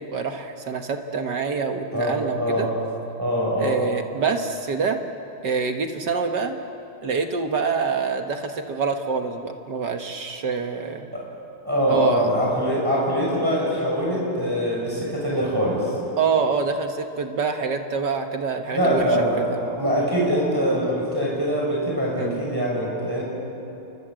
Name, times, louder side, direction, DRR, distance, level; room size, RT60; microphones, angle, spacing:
voice 1, 0.0-2.7 3.6-5.0 5.4-6.6 7.0-11.1 11.9-12.3 16.2-19.6 22.2-22.4, right 5 dB, 55° right, 6 dB, 1.8 m, -26 dB
voice 2, 1.9-2.7 3.2-3.8 11.1-11.2 11.6-15.9 18.7-23.2, equal, 10° right, -4 dB, 6.3 m, -23 dB
29.5 x 24.5 x 7.7 m, 2.8 s
omnidirectional pair, 2.4 m